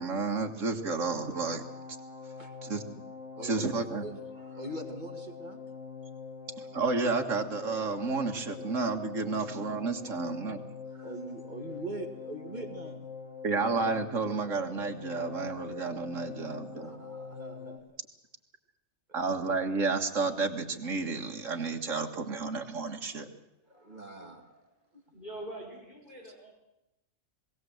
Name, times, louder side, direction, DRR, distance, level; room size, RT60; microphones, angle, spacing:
voice 1, 0.0-1.6 2.6-2.8 3.4-4.1 6.6-10.6 13.4-16.9 19.1-23.3, right 4 dB, 65° right, 4 dB, 2.1 m, -31 dB
sound 1, 1.0-17.8, left 5 dB, 60° left, 1.8 m, -44 dB
voice 2, 3.3-5.6 8.5-8.6 9.3-9.4 10.9-13.0 16.8-18.0 23.7-24.5 24.9-25.0 26.2-26.3, right 1 dB, 35° right, 4 dB, 2.1 m, -43 dB
voice 3, 25.1-26.5, right 1 dB, 35° left, -4 dB, 4.7 m, -43 dB
21.0 x 17.0 x 7.9 m, 0.91 s
omnidirectional pair, 1.4 m